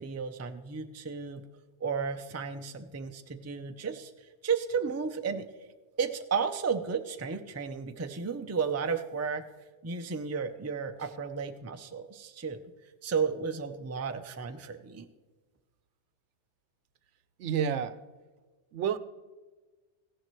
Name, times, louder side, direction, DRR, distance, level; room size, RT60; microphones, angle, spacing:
voice 1, 0.0-1.4 1.8-4.1 4.4-5.5 6.0-9.4 9.8-12.6 13.0-15.1, right 5 dB, 20° right, 7 dB, 0.4 m, -33 dB
voice 2, 17.4-18.0 18.7-19.0, right 8 dB, 80° right, 14 dB, 0.9 m, -29 dB
15.5 x 11.0 x 3.1 m, 1.3 s
omnidirectional pair, 1.2 m